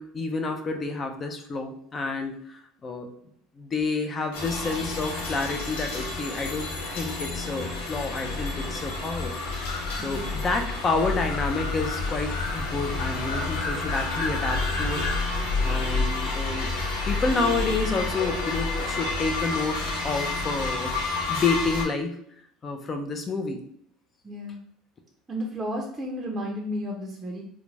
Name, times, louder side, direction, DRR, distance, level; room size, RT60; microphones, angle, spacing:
voice 1, 0.0-3.1 3.6-9.4 9.9-16.7 17.1-20.9 21.3-22.2 22.6-23.6, left 3 dB, 30° left, 5 dB, 0.5 m, -29 dB
sound 1, 4.3-21.8, left 3 dB, 85° left, 0.7 m, -29 dB
voice 2, 10.0-10.4 24.2-24.6 25.3-27.4, equal, 20° right, -2 dB, 0.6 m, -33 dB
2.4 x 2.1 x 3.2 m, 0.69 s
supercardioid pair, 95°, 0 cm